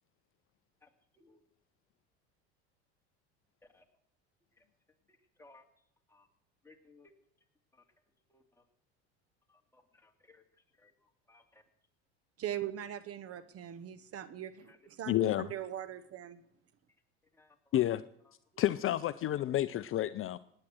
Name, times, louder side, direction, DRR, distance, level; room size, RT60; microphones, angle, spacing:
voice 1, 0.8-1.4 3.6-3.9 4.5-4.7 5.1-6.3 6.6-7.1 7.4-7.5 7.7-7.9 8.3-8.7 9.5-11.6 14.6-15.2 15.6-15.7 16.9-18.0 18.2-18.7, left 3 dB, 5° left, 2.7 m, -64 dB
voice 2, 12.4-14.7 15.0-16.4, right 11 dB, 45° right, 1.1 m, -40 dB
voice 3, 15.1-15.5 17.7-18.0 18.6-20.4, left 13 dB, 40° left, 0.6 m, -30 dB
18.0 x 10.0 x 7.8 m
hypercardioid pair, 90°, 34 cm